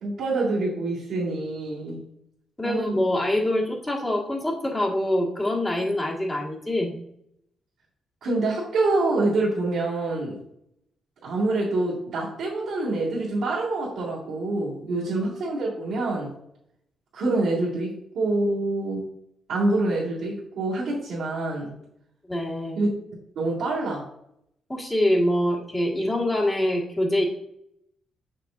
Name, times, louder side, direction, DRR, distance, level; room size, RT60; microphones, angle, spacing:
voice 1, 0.0-2.0 2.6-3.1 8.2-10.4 11.2-16.3 17.1-19.1 19.5-21.7 22.8-22.9 23.4-24.0, right 2 dB, 80° right, -11 dB, 2.3 m, -26 dB
voice 2, 2.6-7.0 14.9-15.0 22.3-22.8 24.7-27.2, left 1 dB, 15° left, -2 dB, 1.7 m, -25 dB
6.6 x 6.0 x 2.5 m, 0.75 s
cardioid pair, 85°, 0 cm